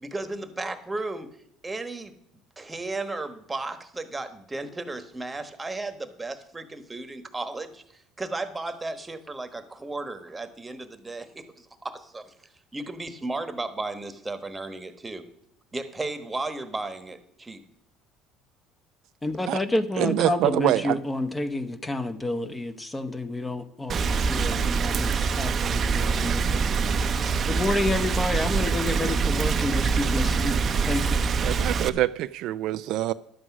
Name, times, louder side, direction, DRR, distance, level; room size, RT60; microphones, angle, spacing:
voice 1, 0.0-1.3 1.6-2.1 2.6-12.3 12.7-15.3 15.7-17.6, right 2 dB, 15° right, 1.2 m, -34 dB
voice 2, 19.2-26.6 27.5-31.2, left 2 dB, 15° left, 0.9 m, -29 dB
voice 3, 20.0-21.0 31.4-33.1, right 14 dB, 70° right, 0.3 m, -25 dB
Rain, 23.9-31.9, right 5 dB, 40° right, 0.7 m, -25 dB
11.0 x 7.9 x 6.1 m
supercardioid pair, 85°, 0 cm